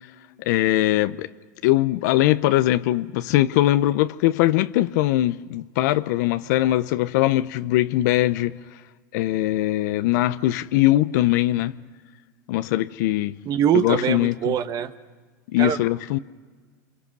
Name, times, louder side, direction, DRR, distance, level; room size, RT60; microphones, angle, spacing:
voice 1, 0.5-1.3 1.6-8.6 9.1-11.7 12.5-13.4 13.7-14.5 15.5-16.2, left 15 dB, 70° left, 0.7 m, -21 dB
voice 2, 13.4-14.9 15.6-15.8, right 9 dB, 40° right, 1.2 m, -23 dB
28.0 x 26.0 x 6.1 m
supercardioid pair, 115°, 10 cm